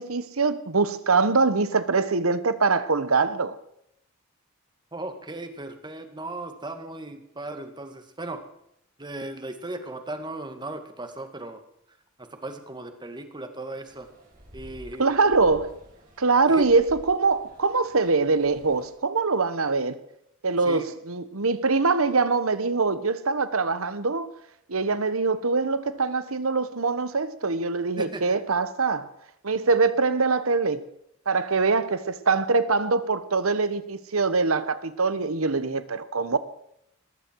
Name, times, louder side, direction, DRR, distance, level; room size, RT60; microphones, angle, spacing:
voice 1, 0.0-3.6 15.0-15.7 16.2-19.9 20.4-24.3 24.7-29.1 29.4-30.8 31.3-36.4, right 4 dB, 90° right, 1.2 m, -23 dB
voice 2, 4.9-8.4 9.0-11.6 11.9-14.1 14.5-15.2 16.5-16.7 20.6-20.9 28.0-28.2, right 2 dB, 20° right, 2.1 m, -37 dB
sound 1, 13.9-18.9, equal, 40° right, 5.9 m, -50 dB
20.0 x 15.0 x 4.8 m
head